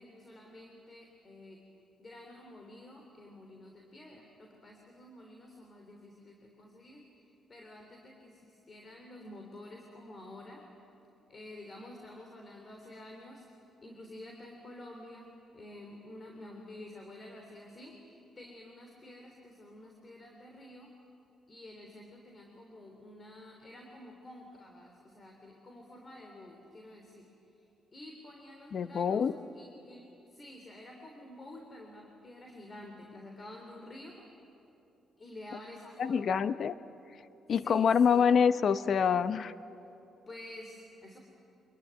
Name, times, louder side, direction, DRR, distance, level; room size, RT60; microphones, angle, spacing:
voice 1, 0.0-1.6 2.0-7.0 7.5-10.6 11.3-20.9 21.5-27.3 27.6-29.2 29.5-34.3 35.2-36.3 37.6-38.2 40.3-41.2, left 1 dB, 35° left, 2 dB, 3.4 m, -50 dB
voice 2, 28.7-29.3 36.0-36.7 37.5-39.5, left 7 dB, 55° left, 13 dB, 0.8 m, -26 dB
25.0 x 21.5 x 9.6 m, 2.9 s
cardioid pair, 90°, 0 cm